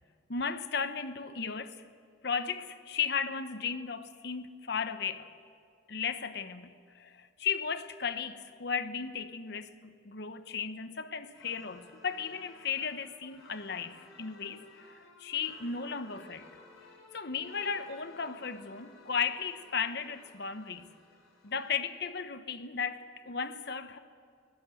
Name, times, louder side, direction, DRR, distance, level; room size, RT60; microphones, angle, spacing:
voice 1, 0.3-1.8 2.2-5.3 5.9-16.5 17.1-20.9 21.4-24.0, left 6 dB, 55° left, 10 dB, 0.9 m, -35 dB
sound 1, 11.3-21.7, left 3 dB, 90° left, 4.5 m, -56 dB
23.5 x 16.0 x 7.7 m, 2.2 s
head